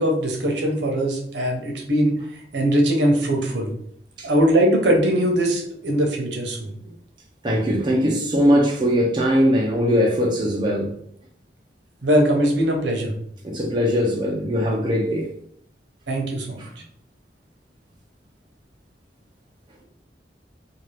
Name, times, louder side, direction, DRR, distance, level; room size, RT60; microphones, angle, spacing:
voice 1, 0.0-2.1 2.5-3.7 4.2-6.7 12.0-13.1 16.1-16.6, equal, 80° right, 1 dB, 0.8 m, -21 dB
voice 2, 7.4-10.9 13.4-15.3 16.6-16.7, equal, 25° right, -1 dB, 0.5 m, -20 dB
2.7 x 2.4 x 3.2 m, 0.66 s
head